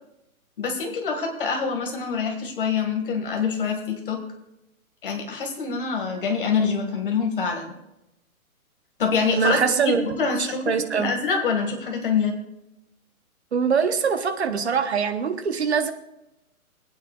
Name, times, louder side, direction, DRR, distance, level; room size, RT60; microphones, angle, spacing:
voice 1, 0.6-4.2 5.0-7.7 9.0-9.6 9.8-12.4, left 5 dB, 35° left, 3 dB, 2.0 m, -25 dB
voice 2, 9.4-10.0 10.4-11.1 13.5-15.9, right 6 dB, 50° right, 8 dB, 1.1 m, -23 dB
24.5 x 9.2 x 2.4 m, 0.90 s
hypercardioid pair, 175°, 44 cm